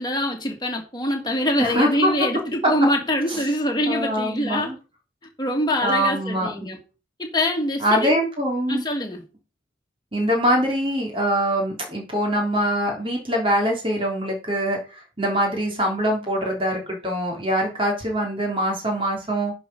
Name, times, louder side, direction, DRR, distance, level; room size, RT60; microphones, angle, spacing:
voice 1, 0.0-4.7 5.4-6.8 7.2-8.1 8.7-9.2, left 1 dB, 20° left, 2.3 m, -24 dB
voice 2, 1.6-2.3 2.6-2.7 3.3-3.4 3.9-4.8 5.8-6.5 7.8-8.8 10.1-19.5, equal, 25° right, 3.5 m, -23 dB
10.5 x 4.9 x 5.5 m
head